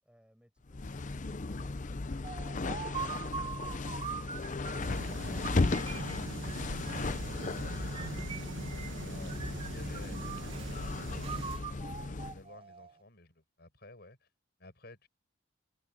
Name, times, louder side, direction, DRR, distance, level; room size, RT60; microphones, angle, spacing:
voice 1, 0.0-0.1, equal, 5° right, 7.5 m, -65 dB
sound 1, 0.7-12.4, left 3 dB, 40° left, 0.7 m, -36 dB
sound 2, 2.2-5.0 5.4-7.2 7.9-9.0 9.3-10.7 11.2-13.0, right 6 dB, 30° right, 0.9 m, -43 dB
sound 3, 4.8-11.6, right 3 dB, 85° right, 1.1 m, -42 dB
voice 2, 9.0-11.0 11.7-14.3 14.6-15.1, left 2 dB, 60° left, 7.5 m, -54 dB
head